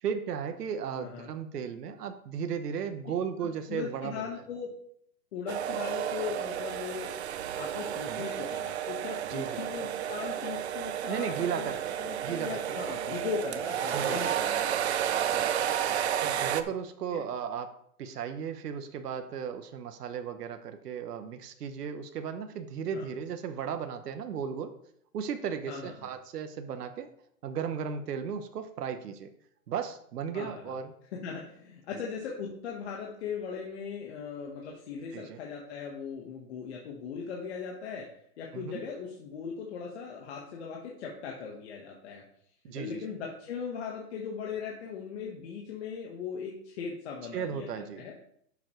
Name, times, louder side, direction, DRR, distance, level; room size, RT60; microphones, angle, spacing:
voice 1, 0.0-4.3 8.1-8.3 9.2-9.6 11.1-11.9 12.2-12.6 13.9-14.3 15.3-15.4 16.2-17.7 18.0-24.7 25.1-27.1 27.4-29.3 29.7-30.9 35.1-35.4 38.5-38.8 42.6-43.0 47.3-48.0, right 7 dB, 80° right, 8 dB, 1.1 m, -35 dB
voice 2, 0.9-1.3 3.4-4.7 5.3-7.1 7.5-15.2 15.8-16.0 17.1-17.2 22.9-23.1 25.7-26.1 30.3-30.7 31.2-38.1 38.4-42.2 42.7-48.1, left 6 dB, 45° left, -2 dB, 1.5 m, -39 dB
sound 1, 5.5-16.6, right 10 dB, 45° right, 0.6 m, -32 dB
11.0 x 7.0 x 3.2 m, 0.69 s
hypercardioid pair, 160°, 47 cm